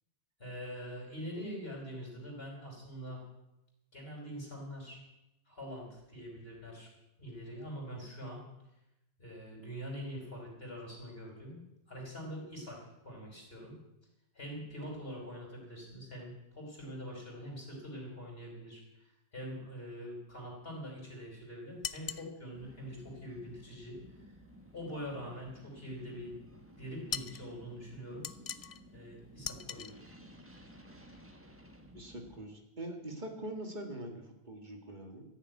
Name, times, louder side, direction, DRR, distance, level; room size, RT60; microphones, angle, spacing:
voice 1, 0.4-3.2 3.9-5.0 5.5-6.9 7.2-8.4 9.2-11.6 11.9-13.7 14.3-18.8 19.3-24.0 24.7-26.3 26.8-28.2 28.9-29.9, equal, 65° left, -1 dB, 4.9 m, -44 dB
sound 1, 21.8-22.3 27.1-27.4 28.2-28.8 29.4-29.9, left 7 dB, 45° left, 0.5 m, -39 dB
sound 2, 22.5-32.4, equal, 10° right, 1.4 m, -56 dB
voice 2, 31.9-35.2, right 1 dB, 45° right, 3 dB, 2.1 m, -43 dB
14.5 x 7.3 x 9.3 m, 0.91 s
omnidirectional pair, 1.1 m